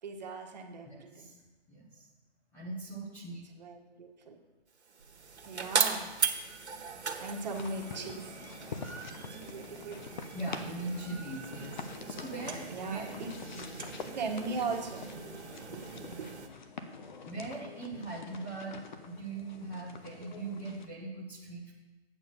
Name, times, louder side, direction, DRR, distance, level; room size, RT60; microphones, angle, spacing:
voice 1, 0.0-1.3 3.6-4.4 5.4-6.1 7.2-8.4 8.9-9.0 9.3-10.0 11.2-11.3 12.5-13.3 14.1-15.1 15.7-15.9 16.2-16.3, right 4 dB, 40° right, 2 dB, 1.4 m, -39 dB
voice 2, 0.8-1.4 1.7-2.1 2.5-3.4 10.3-11.8 12.1-13.1 17.3-21.7, right 2 dB, 5° left, -7 dB, 0.7 m, -40 dB
sound 1, 4.8-16.5, right 5 dB, 85° right, 1.6 m, -38 dB
sound 2, 7.5-20.9, left 4 dB, 45° left, 0.9 m, -46 dB
8.8 x 7.0 x 5.4 m, 1.2 s
hypercardioid pair, 155°, 33 cm